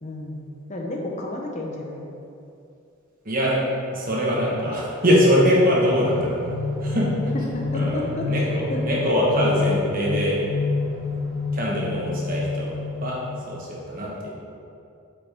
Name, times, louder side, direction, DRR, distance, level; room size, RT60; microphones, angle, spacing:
voice 1, 0.0-2.1 7.3-9.0, left 2 dB, 35° left, -1 dB, 0.8 m, -32 dB
voice 2, 3.2-3.6 3.9-6.6 6.8-7.1 7.7-10.4 11.5-12.7 13.0-13.2 13.5-14.3, equal, 40° right, -4 dB, 1.4 m, -22 dB
sound 1, 5.7-13.6, left 3 dB, 75° right, 1.3 m, -28 dB
8.5 x 5.0 x 3.6 m, 2.6 s
head